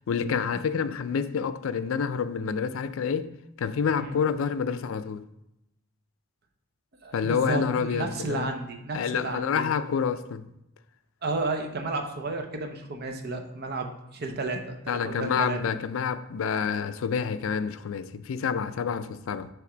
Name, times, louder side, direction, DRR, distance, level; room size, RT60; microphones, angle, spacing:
voice 1, 0.1-3.3 3.6-5.2 7.1-8.5 8.9-10.5 14.9-19.5, left 6 dB, 75° left, 0.4 m, -28 dB
voice 2, 7.0-9.7 11.2-15.6, right 3 dB, 50° right, 0.7 m, -32 dB
5.9 x 3.5 x 5.0 m
head